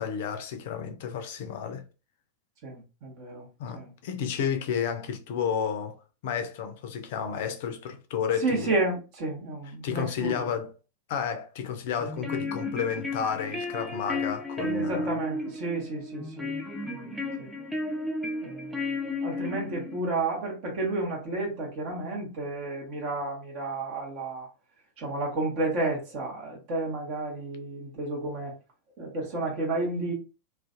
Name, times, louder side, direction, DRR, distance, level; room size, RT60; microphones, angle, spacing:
voice 1, 0.0-1.8 3.6-6.0 6.2-8.7 9.8-10.7 11.1-15.2, left 7 dB, 50° left, 0.4 m, -31 dB
voice 2, 2.6-3.5 3.7-3.9 8.4-10.5 14.6-16.5 16.9-17.5 18.4-18.9 19.2-24.5 25.0-28.5 29.0-30.1, right 2 dB, 45° right, 0.8 m, -31 dB
sound 1, 12.0-20.0, left 2 dB, 5° right, 0.5 m, -33 dB
2.4 x 2.1 x 2.5 m
figure-of-eight pair, 90°, 0 cm